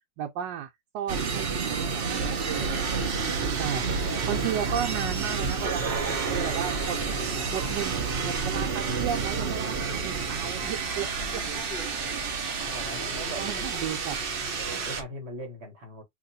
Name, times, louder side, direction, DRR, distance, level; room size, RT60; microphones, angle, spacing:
voice 1, 0.2-3.2 3.6-3.9 4.3-7.0 7.5-11.1 11.3-11.4 13.0-13.1 13.4-14.2, right 10 dB, 85° right, 1.3 m, -34 dB
sound 1, 1.1-15.0, right 5 dB, 60° right, 0.5 m, -30 dB
Chirp tweet, 2.5-15.0, equal, 45° left, 0.8 m, -41 dB
voice 2, 12.7-13.7 14.4-16.0, right 1 dB, 40° right, 1.2 m, -40 dB
3.0 x 2.9 x 4.0 m
omnidirectional pair, 1.9 m